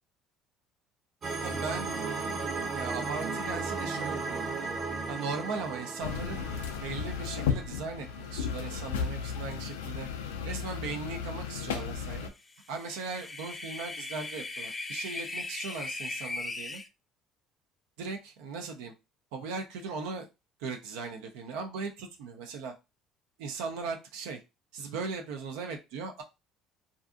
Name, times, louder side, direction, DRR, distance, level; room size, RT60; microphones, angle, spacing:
sound 1, 1.2-8.3, right 4 dB, 45° right, 1.1 m, -35 dB
voice 1, 1.4-4.4 5.1-6.5 6.8-10.1 10.4-12.3 12.7-16.8 18.0-18.9 19.3-20.3 20.6-22.7 23.4-24.4 24.7-26.2, right 4 dB, 80° right, 3 dB, 0.4 m, -38 dB
sound 2, 6.0-12.3, left 7 dB, 90° left, 0.3 m, -34 dB
sound 3, 12.6-16.9, left 3 dB, 25° left, 0.4 m, -38 dB
2.5 x 2.5 x 2.4 m, 0.26 s
hypercardioid pair, 65°, 0 cm